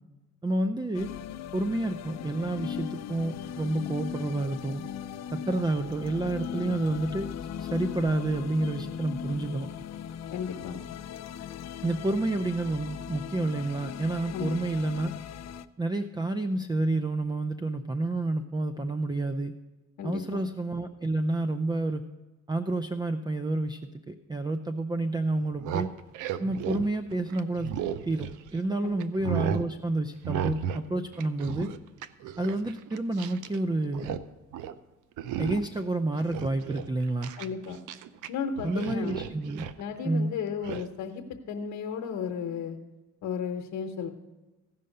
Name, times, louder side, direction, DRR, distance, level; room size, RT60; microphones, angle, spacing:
voice 1, 0.4-1.1 1.5-4.8 5.3-7.3 7.6-9.7 11.8-15.1 15.8-19.5 20.0-22.1 22.5-25.9 26.4-27.7 28.1-31.7 32.4-34.2 35.4-37.3 38.6-39.7 40.0-40.3, right 2 dB, 15° right, 8 dB, 0.5 m, -29 dB
sound 1, 0.9-15.7, left 9 dB, 60° left, 0.5 m, -38 dB
voice 2, 10.3-10.8 14.3-14.6 20.0-20.4 28.8-29.0 37.4-37.8 38.3-39.2 39.8-42.8 43.2-44.1, left 6 dB, 75° left, 3 dB, 1.0 m, -34 dB
sound 2, 25.4-28.7 29.0-29.7 30.2-30.9 31.1-33.6 33.8-34.2 34.5-34.8 35.2-35.8 36.2-38.3 38.6-39.8 40.6-40.8, right 9 dB, 85° right, 0.6 m, -34 dB
15.5 x 5.5 x 6.5 m, 1.1 s
cardioid pair, 90°, 30 cm